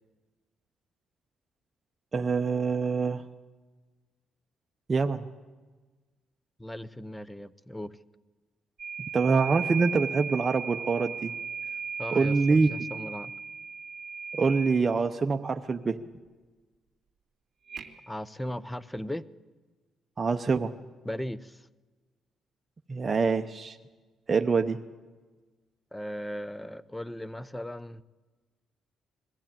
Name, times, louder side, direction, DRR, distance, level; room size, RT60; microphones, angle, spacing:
voice 1, 2.1-3.2 4.9-5.3 9.1-11.3 12.1-12.7 14.3-16.0 20.2-20.7 22.9-23.8 24.3-24.8, right 4 dB, 35° right, 0.8 m, -25 dB
voice 2, 6.6-7.9 12.0-13.3 18.1-19.3 21.0-21.7 25.9-28.0, left 1 dB, 10° left, 0.7 m, -37 dB
sound 1, 8.8-14.9 17.7-17.9, right 6 dB, 55° right, 2.3 m, -36 dB
21.0 x 14.5 x 9.0 m
cardioid pair, 90°, 0 cm